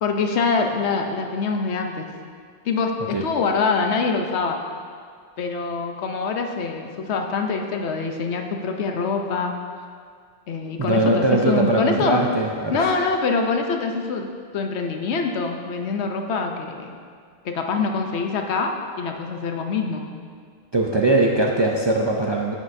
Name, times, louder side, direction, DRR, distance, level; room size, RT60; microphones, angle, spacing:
voice 1, 0.0-2.1 2.6-4.6 5.4-9.6 10.5-12.2 12.7-14.3 14.5-16.9 17.4-18.7 19.0-20.0, left 4 dB, 85° left, 4 dB, 1.0 m, -24 dB
voice 2, 10.8-12.9 20.7-22.5, right 2 dB, 40° right, -1 dB, 0.4 m, -21 dB
9.9 x 7.3 x 2.6 m, 2.1 s
omnidirectional pair, 1.1 m